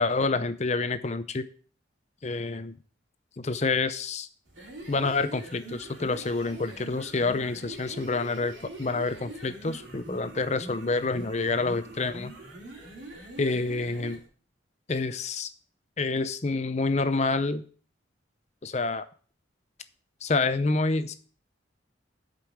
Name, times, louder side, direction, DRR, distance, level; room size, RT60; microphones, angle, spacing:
voice 1, 0.0-1.5 2.2-2.8 3.4-4.3 4.9-8.5 8.8-12.3 13.4-14.2 14.9-15.5 16.0-17.6 18.6-19.1 20.2-21.1, left 3 dB, 35° left, 12 dB, 0.6 m, -28 dB
sound 1, 4.5-14.3, right 1 dB, 70° right, 3.4 m, -43 dB
7.9 x 5.4 x 7.1 m, 0.42 s
head